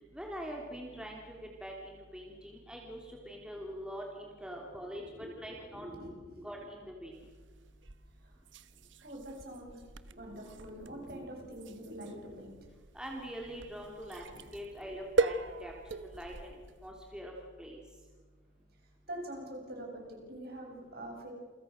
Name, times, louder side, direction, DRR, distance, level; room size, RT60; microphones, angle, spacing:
voice 1, 0.1-1.4 1.6-5.0 5.4-5.9 6.4-7.1 12.9-15.7 16.0-16.5 16.8-17.3 17.6-17.8, equal, 5° right, -1 dB, 3.3 m, -43 dB
voice 2, 5.0-6.5 8.2-8.4 9.0-9.8 10.0-12.6 14.3-14.4 18.8-21.3, right 1 dB, 50° right, 1 dB, 7.7 m, -45 dB
sound 1, 7.1-16.9, right 3 dB, 75° right, 1.2 m, -39 dB
29.0 x 24.0 x 6.6 m, 1.4 s
head